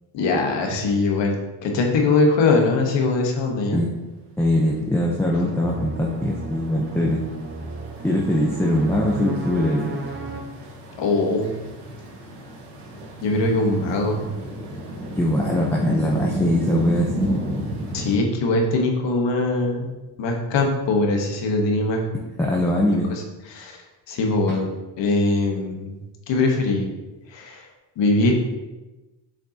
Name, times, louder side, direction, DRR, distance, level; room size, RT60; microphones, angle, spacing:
voice 1, 0.1-3.8 11.0-11.5 13.2-14.2 17.9-19.9 20.2-22.0 23.1-23.8 24.1-24.7 25.0-26.0 26.3-26.9 27.3-27.7 28.0-28.3, left 2 dB, 75° left, 2 dB, 1.3 m, -21 dB
voice 2, 4.4-7.2 8.0-9.9 15.2-17.3 22.4-23.1, left 1 dB, 5° left, -3 dB, 0.7 m, -21 dB
sound 1, 5.4-10.4, right 3 dB, 25° right, 0.8 m, -34 dB
sound 2, 5.4-18.2, right 1 dB, 60° right, 1.8 m, -33 dB
7.1 x 5.2 x 2.9 m, 1.1 s
cardioid pair, 110°, 44 cm